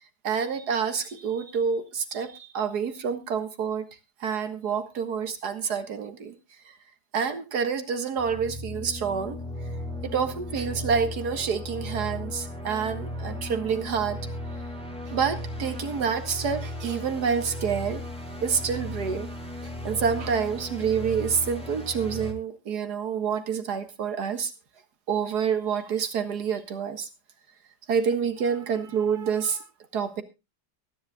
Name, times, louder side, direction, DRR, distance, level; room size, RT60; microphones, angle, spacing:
voice 1, 0.2-3.9 4.2-6.3 7.1-9.4 10.0-14.2 15.1-18.0 18.4-19.3 19.6-24.5 25.1-27.1 27.9-29.6 29.9-30.2, right 6 dB, 75° right, 9 dB, 2.1 m, -28 dB
sound 1, 8.2-22.3, left 1 dB, 5° left, 2.4 m, -36 dB
23.5 x 10.5 x 2.3 m, 0.26 s
omnidirectional pair, 1.7 m